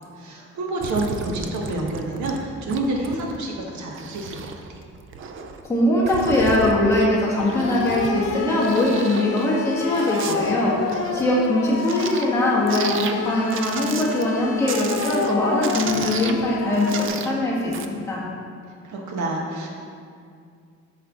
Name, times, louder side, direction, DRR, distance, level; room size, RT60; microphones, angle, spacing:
voice 1, 0.2-4.6 18.8-19.7, right 2 dB, 75° right, 0 dB, 1.3 m, -28 dB
sound 1, 0.8-2.4 2.7-3.4 3.7-5.7 6.1-8.3 8.6-12.3 12.7-13.2 13.5-14.4 14.7-15.4 15.6-17.4 17.7-17.9, right 6 dB, 45° right, 0.4 m, -33 dB
voice 2, 5.6-10.8 11.1-18.2, left 1 dB, 10° left, -6 dB, 1.4 m, -21 dB
sound 2, 7.3-17.1, left 5 dB, 55° left, 0.6 m, -29 dB
8.4 x 5.7 x 3.7 m, 2.3 s
cardioid pair, 180°, 29 cm